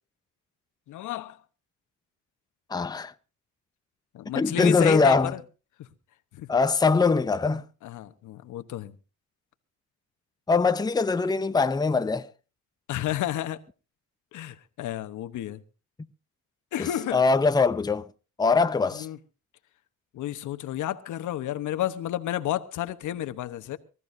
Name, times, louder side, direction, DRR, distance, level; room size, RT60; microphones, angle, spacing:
voice 1, 0.9-1.4 4.1-5.4 5.8-5.9 6.4-6.5 7.8-8.9 12.9-13.6 14.3-15.6 16.7-17.2 18.9-19.2 20.1-23.8, left 13 dB, 80° left, 1.1 m, -31 dB
voice 2, 2.7-3.1 4.3-5.3 6.5-7.6 10.5-12.3 16.8-18.1 18.4-19.1, left 4 dB, 15° left, 0.7 m, -22 dB
24.5 x 14.0 x 2.7 m
cardioid pair, 90°, 30 cm